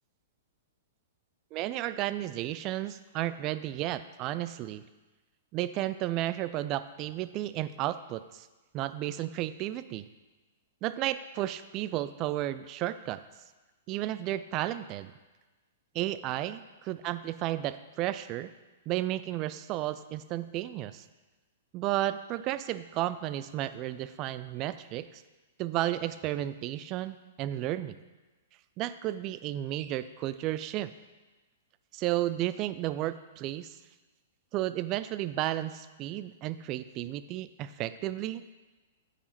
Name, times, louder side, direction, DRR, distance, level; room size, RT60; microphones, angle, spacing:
voice 1, 1.5-4.8 5.5-8.5 8.7-10.0 10.8-13.2 13.9-15.1 15.9-18.5 18.9-21.0 21.7-25.2 25.6-28.0 28.8-30.9 31.9-33.8 34.5-38.4, right 14 dB, 35° right, 13 dB, 0.3 m, -33 dB
8.2 x 5.6 x 2.9 m, 1.2 s
figure-of-eight pair, 110°, 0 cm